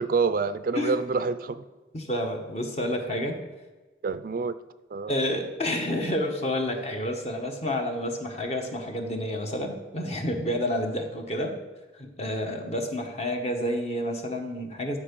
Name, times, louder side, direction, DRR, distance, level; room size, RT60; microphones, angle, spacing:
voice 1, 0.0-1.6 4.0-4.5 4.9-5.1, right 4 dB, 50° right, 13 dB, 0.4 m, -27 dB
voice 2, 1.9-3.4 5.1-11.6 12.0-15.0, left 1 dB, 35° left, 4 dB, 1.1 m, -29 dB
12.5 x 4.7 x 5.3 m, 1.2 s
head